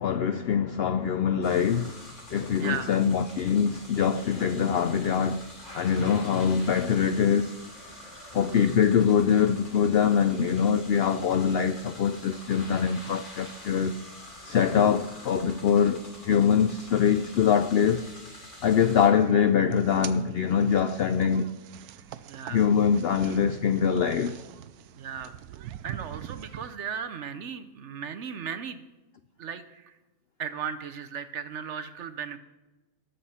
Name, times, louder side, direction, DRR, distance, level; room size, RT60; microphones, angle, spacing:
voice 1, 0.0-2.0 2.3-5.4 5.7-7.5 8.3-14.0 14.4-18.1 18.6-21.5 22.5-24.4, left 7 dB, 70° left, 0.5 m, -23 dB
sound 1, 1.4-19.1, left 1 dB, 35° left, 3.2 m, -46 dB
voice 2, 2.6-3.0 22.3-22.7 24.9-25.3 25.8-28.8 29.4-29.9 30.4-32.4, right 7 dB, 60° right, 0.9 m, -36 dB
sound 2, 18.9-26.8, right 11 dB, 90° right, 1.1 m, -44 dB
20.0 x 6.8 x 4.3 m
omnidirectional pair, 1.5 m